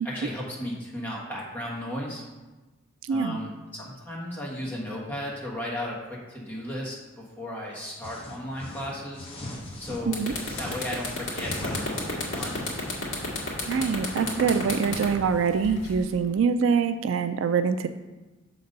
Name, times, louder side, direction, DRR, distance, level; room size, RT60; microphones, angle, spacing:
voice 1, 0.0-2.2 3.1-9.3 9.8-10.2 10.6-12.6, left 1 dB, 10° left, -5 dB, 1.4 m, -35 dB
voice 2, 3.0-3.4 10.1-10.3 13.7-17.9, right 6 dB, 70° right, 10 dB, 0.3 m, -24 dB
sound 1, 8.0-10.0 10.4-13.0, left 1 dB, 25° left, 0.9 m, -39 dB
sound 2, 9.6-9.8 10.1-16.2, left 3 dB, 70° left, 1.9 m, -32 dB
6.8 x 4.0 x 5.2 m, 1.2 s
head